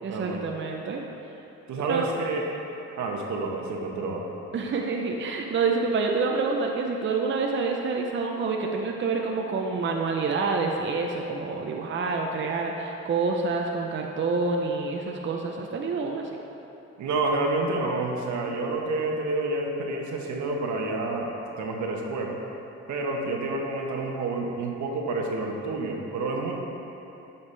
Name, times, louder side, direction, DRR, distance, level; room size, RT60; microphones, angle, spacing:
voice 1, 0.0-1.0 1.8-2.1 4.5-16.3, right 4 dB, 40° right, 1 dB, 0.6 m, -27 dB
voice 2, 1.7-2.5 3.0-4.2 17.0-22.4 22.9-26.5, right 2 dB, 75° right, 0 dB, 1.1 m, -29 dB
9.7 x 5.7 x 3.3 m, 3.0 s
cardioid pair, 90°, 30 cm